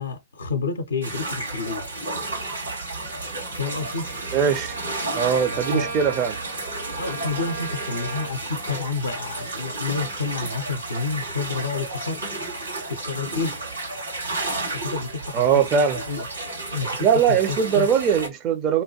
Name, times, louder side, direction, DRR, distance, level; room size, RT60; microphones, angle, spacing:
voice 1, 0.0-1.9 3.5-4.1 5.5-6.1 7.0-12.3 12.9-13.6 14.7-16.3 16.7-17.9, left 4 dB, 75° left, 0.5 m, -30 dB
sound 1, 1.0-18.3, right 2 dB, 80° right, 1.5 m, -32 dB
Bowed string instrument, 3.5-8.5, right 4 dB, 60° right, 0.8 m, -37 dB
voice 2, 4.3-4.8 5.1-6.4 15.3-16.0 17.0-18.8, right 7 dB, 35° right, 0.6 m, -21 dB
2.8 x 2.2 x 2.9 m
figure-of-eight pair, 100°, 0 cm